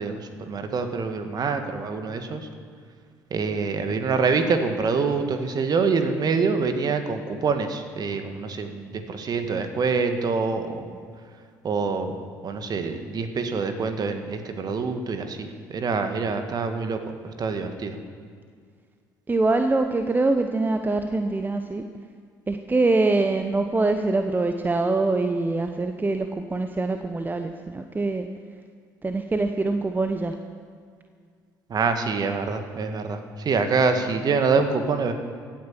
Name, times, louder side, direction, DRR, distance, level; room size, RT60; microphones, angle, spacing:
voice 1, 0.0-2.5 3.3-11.0 11.6-12.2 12.4-18.0 31.7-35.1, right 4 dB, 40° right, 7 dB, 1.8 m, -25 dB
voice 2, 19.3-21.8 22.5-28.3 29.0-30.4, right 3 dB, 20° right, 7 dB, 0.9 m, -24 dB
16.5 x 9.2 x 7.5 m, 2.1 s
figure-of-eight pair, 55°, 10 cm